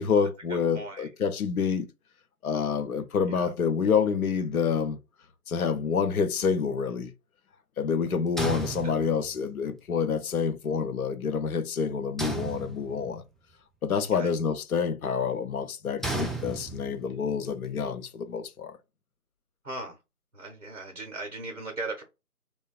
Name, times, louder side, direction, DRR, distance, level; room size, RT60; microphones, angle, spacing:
voice 1, 0.0-1.9 2.4-5.0 5.5-7.1 7.8-13.2 13.8-18.7, left 6 dB, 65° left, 0.5 m, -27 dB
voice 2, 0.7-1.1 3.4-3.5 14.1-14.3 19.6-20.0 20.3-22.0, right 2 dB, 50° right, 0.6 m, -37 dB
sound 1, 8.4-9.5 12.2-13.2 16.0-17.1, right 3 dB, ahead, 0.3 m, -34 dB
2.7 x 2.1 x 2.2 m
figure-of-eight pair, 170°, 46 cm